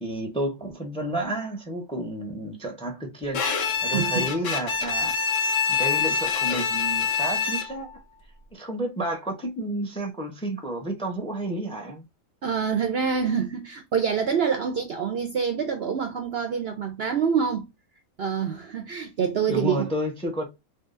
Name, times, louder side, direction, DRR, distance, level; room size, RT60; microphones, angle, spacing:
voice 1, 0.0-5.2 5.7-7.9 8.5-12.0 19.5-20.4, right 1 dB, 5° left, 0.7 m, -31 dB
Bowed string instrument, 3.3-7.9, left 6 dB, 65° left, 1.1 m, -25 dB
voice 2, 3.8-4.3 12.4-17.6 18.2-19.9, right 6 dB, 60° right, 0.7 m, -26 dB
3.6 x 2.7 x 2.5 m
omnidirectional pair, 1.5 m